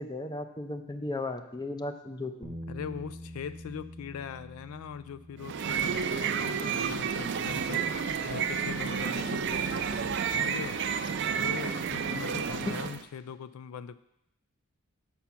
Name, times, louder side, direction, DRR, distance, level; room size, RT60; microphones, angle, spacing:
voice 1, 0.0-2.6 12.7-12.8, left 2 dB, 20° left, 7 dB, 0.5 m, -35 dB
sound 1, 2.4-8.7, equal, 15° right, 0.8 m, -47 dB
voice 2, 2.7-10.8 11.4-14.0, left 7 dB, 75° left, 14 dB, 0.3 m, -41 dB
sound 2, 5.4-13.0, right 6 dB, 50° right, 0.4 m, -30 dB
6.1 x 5.8 x 6.9 m, 0.82 s
head